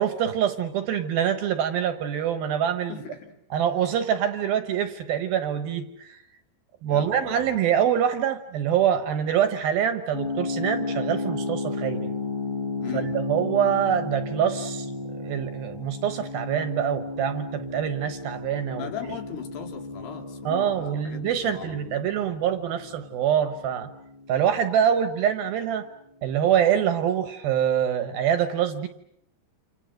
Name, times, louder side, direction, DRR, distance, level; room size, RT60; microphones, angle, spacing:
voice 1, 0.0-3.0 3.5-6.2 6.8-12.1 12.9-14.9 15.2-18.9 20.5-23.9 24.3-25.9 26.2-28.9, right 9 dB, 70° right, 9 dB, 2.6 m, -25 dB
voice 2, 2.9-3.4 6.9-7.6 12.8-13.2 18.7-22.1, left 9 dB, 65° left, 3 dB, 4.5 m, -38 dB
sound 1, 10.1-24.9, left 3 dB, 20° left, 1.5 m, -34 dB
29.0 x 27.5 x 6.5 m, 0.76 s
omnidirectional pair, 5.1 m